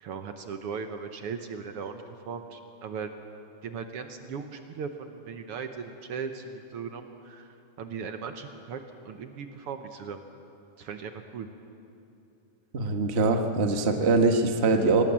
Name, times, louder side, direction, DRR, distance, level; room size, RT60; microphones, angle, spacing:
voice 1, 0.0-3.1 3.6-8.8 9.0-10.2 10.8-11.5, right 6 dB, 65° right, 6 dB, 1.4 m, -38 dB
voice 2, 12.7-15.0, right 3 dB, 85° right, 4 dB, 0.5 m, -23 dB
25.0 x 18.5 x 7.5 m, 2.8 s
omnidirectional pair, 3.7 m